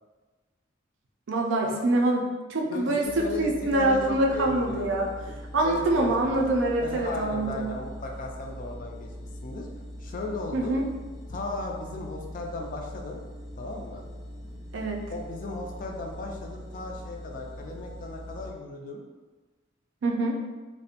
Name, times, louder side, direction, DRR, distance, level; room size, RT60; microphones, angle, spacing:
voice 1, 1.3-2.2 2.5-3.0 3.4-5.1 5.5-7.7 10.5-10.9 14.7-15.0 20.0-20.4, right 2 dB, 65° right, 0 dB, 0.4 m, -25 dB
voice 2, 2.7-4.9 5.2-5.4 5.6-6.5 6.8-9.1 9.4-9.7 10.0-10.8 11.3-13.2 13.6-14.0 15.1-19.0, left 2 dB, 40° left, 1 dB, 0.3 m, -36 dB
sound 1, 3.0-18.5, equal, 65° left, 0.7 m, -41 dB
2.4 x 2.1 x 2.7 m, 1.3 s
head